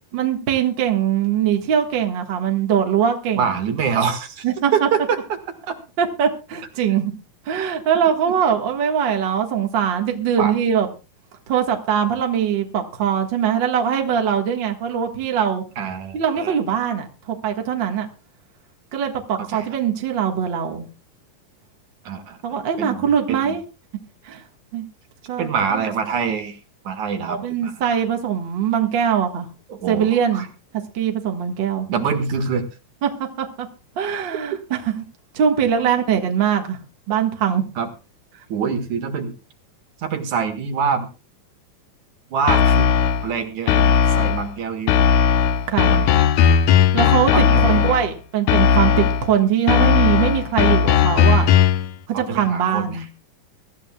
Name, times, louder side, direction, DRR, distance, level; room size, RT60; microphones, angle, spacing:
voice 1, 0.1-3.6 4.4-4.9 6.0-7.1 7.4-10.9 11.5-15.6 16.1-18.1 18.9-20.9 22.4-23.6 24.2-24.4 24.7-24.9 25.3-25.8 27.3-29.5 29.9-30.5 30.9-31.9 33.0-33.1 33.4-33.7 33.9-34.9 35.3-36.8 37.1-37.7 45.7-45.9 46.9-51.5 52.2-53.1, right 8 dB, 45° right, 3 dB, 1.7 m, -21 dB
voice 2, 3.4-4.5 4.7-5.2 5.7-5.8 8.2-8.3 10.4-10.5 15.8-16.6 19.5-19.7 22.0-22.4 22.8-23.6 25.4-26.6 26.8-27.9 29.7-30.1 30.3-30.5 31.9-32.7 36.1-36.2 37.8-37.9 38.5-39.3 40.0-41.1 42.3-42.9 43.2-44.9 45.8-46.2 47.3-48.0 52.1-53.1, right 6 dB, 60° right, 6 dB, 2.9 m, -25 dB
sound 1, 42.5-43.3 43.7-44.5 44.9-48.1 48.5-49.3 49.7-51.9, left 7 dB, 75° left, 2.1 m, -16 dB
23.5 x 13.5 x 2.3 m, 0.30 s
omnidirectional pair, 4.0 m